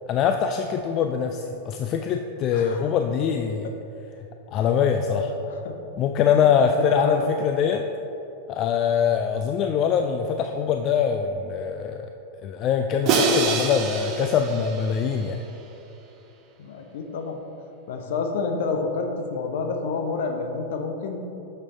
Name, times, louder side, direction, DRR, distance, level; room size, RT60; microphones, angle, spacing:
voice 1, 0.1-3.7 4.5-5.3 6.0-7.8 8.5-12.1 12.4-15.4, left 7 dB, 35° left, 5 dB, 0.3 m, -23 dB
voice 2, 2.5-2.9 4.5-4.7 5.0-5.7 6.2-7.3 16.6-17.4 17.9-21.2, left 4 dB, 55° left, 4 dB, 0.7 m, -29 dB
Crash cymbal, 13.1-15.3, right 3 dB, 40° right, 0.8 m, -25 dB
6.6 x 6.0 x 3.9 m, 2.9 s
figure-of-eight pair, 90°, 0 cm